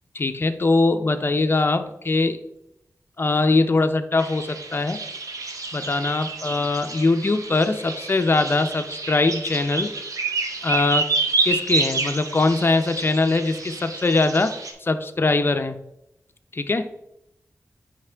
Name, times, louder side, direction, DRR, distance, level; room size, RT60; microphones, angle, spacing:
voice 1, 0.1-2.4 3.2-5.0 5.7-9.9 10.6-11.1 11.4-14.5 14.8-15.8 16.5-16.9, left 3 dB, 40° left, 8 dB, 0.5 m, -22 dB
sound 1, 4.2-14.7, right 3 dB, 85° right, 0.9 m, -29 dB
9.3 x 3.3 x 3.4 m, 0.82 s
wide cardioid pair, 90°, 6 cm